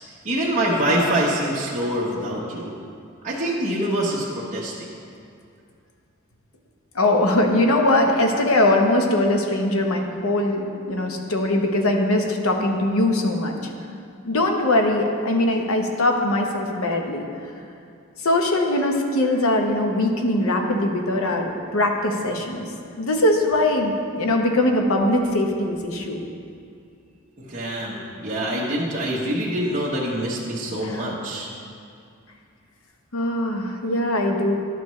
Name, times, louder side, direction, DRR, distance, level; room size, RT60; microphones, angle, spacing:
voice 1, 0.2-2.8 3.2-4.9 27.5-31.5, right 1 dB, 35° right, -7 dB, 1.0 m, -25 dB
voice 2, 6.9-13.6 14.2-17.3 18.2-22.6 23.0-26.2 30.8-31.0 33.1-34.5, left 1 dB, 80° left, 3 dB, 0.8 m, -21 dB
11.0 x 6.8 x 3.1 m, 2.3 s
head